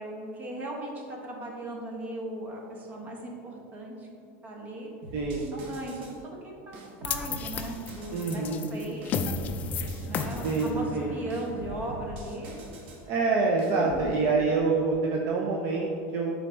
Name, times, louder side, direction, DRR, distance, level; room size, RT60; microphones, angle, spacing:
voice 1, 0.0-4.1 4.4-4.9 5.5-8.4 8.7-9.3 10.1-12.6 13.8-14.3, right 1 dB, 25° right, 0 dB, 1.0 m, -38 dB
sound 1, 5.0-6.2 6.7-8.5 9.0-10.8 11.3-13.1 13.6-14.1, right 1 dB, 70° right, 1.3 m, -43 dB
voice 2, 5.1-5.5 8.1-8.7 10.4-11.1 13.0-16.3, right 4 dB, 45° right, -1 dB, 0.6 m, -26 dB
sound 2, 7.0-13.3, left 5 dB, 25° left, 0.3 m, -35 dB
9.4 x 4.0 x 3.4 m, 2.6 s
supercardioid pair, 165°, 6 cm